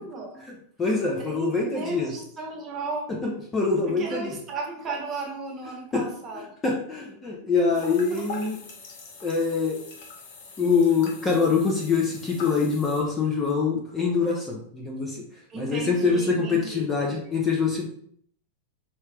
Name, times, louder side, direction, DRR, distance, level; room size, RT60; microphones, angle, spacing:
voice 1, 0.3-2.1 3.1-4.4 5.9-6.1 6.3-8.6 9.2-9.8 10.6-15.2 15.5-17.9, left 4 dB, 15° left, -1 dB, 0.8 m, -25 dB
voice 2, 1.2-3.1 3.8-6.4 7.9-8.2 15.5-17.3, right 3 dB, 20° right, 0 dB, 1.2 m, -35 dB
sound 1, 7.7-13.0, left 4 dB, 60° left, 1.2 m, -43 dB
4.5 x 3.1 x 3.4 m, 0.62 s
supercardioid pair, 150°, 0 cm